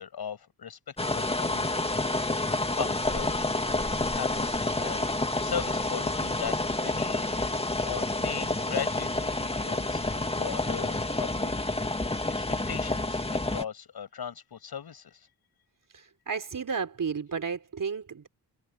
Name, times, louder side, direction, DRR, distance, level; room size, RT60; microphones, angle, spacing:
voice 1, 0.0-2.3 2.8-3.4 4.0-4.5 4.7-7.5 7.8-11.5 12.3-13.2 13.4-15.3, left 8 dB, 65° left, 7.9 m, -38 dB
sound 1, 1.0-13.6, left 2 dB, 15° left, 2.1 m, -29 dB
voice 2, 15.9-18.3, right 6 dB, 50° right, 4.4 m, -33 dB
cardioid pair, 75°, 40 cm